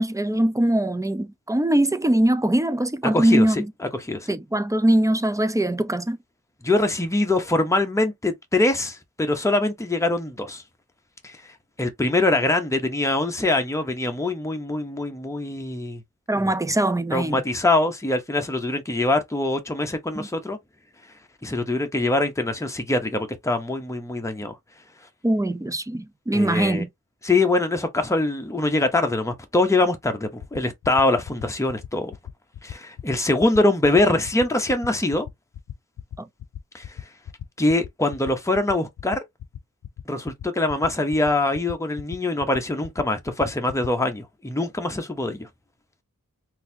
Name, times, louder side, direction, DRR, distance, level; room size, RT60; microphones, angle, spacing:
voice 1, 0.0-3.7 4.3-6.2 16.3-17.4 20.1-20.3 25.2-26.9 36.2-36.3, right 1 dB, 10° right, 0.4 m, -22 dB
voice 2, 3.1-4.3 6.6-10.6 11.2-11.5 11.8-16.0 16.4-16.5 17.1-20.6 21.4-24.6 26.3-26.8 27.2-32.1 32.6-35.3 36.7-36.9 37.6-39.2 40.1-45.5, left 2 dB, 10° left, 0.8 m, -23 dB
sound 1, 30.4-43.9, left 10 dB, 75° left, 0.5 m, -37 dB
3.9 x 2.7 x 2.7 m
wide cardioid pair, 75°, 32 cm